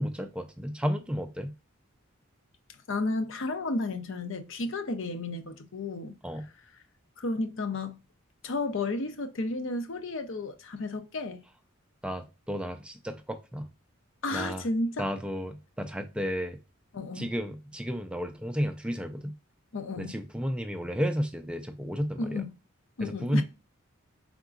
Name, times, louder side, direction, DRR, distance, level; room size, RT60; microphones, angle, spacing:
voice 1, 0.0-1.5 6.2-6.5 12.0-13.7 14.3-14.6 15.0-16.6 17.1-19.3 20.0-22.4 23.0-23.4, equal, 5° right, 0.3 m, -32 dB
voice 2, 2.9-6.2 7.2-8.0 8.4-11.4 14.2-15.1 16.9-17.3 19.7-20.2 22.2-22.5 23.0-23.4, left 2 dB, 60° left, 0.6 m, -32 dB
4.8 x 3.6 x 2.4 m
head